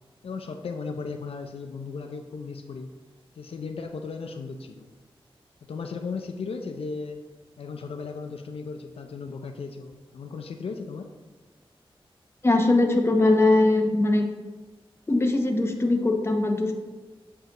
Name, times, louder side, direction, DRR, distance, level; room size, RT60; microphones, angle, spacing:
voice 1, 0.2-2.9 3.4-4.9 5.7-7.2 7.6-11.1, left 4 dB, 75° left, 5 dB, 0.5 m, -36 dB
voice 2, 12.4-14.3 15.1-16.7, left 2 dB, 25° left, 3 dB, 0.8 m, -21 dB
7.5 x 5.5 x 2.9 m, 1.3 s
wide cardioid pair, 125°, 10 cm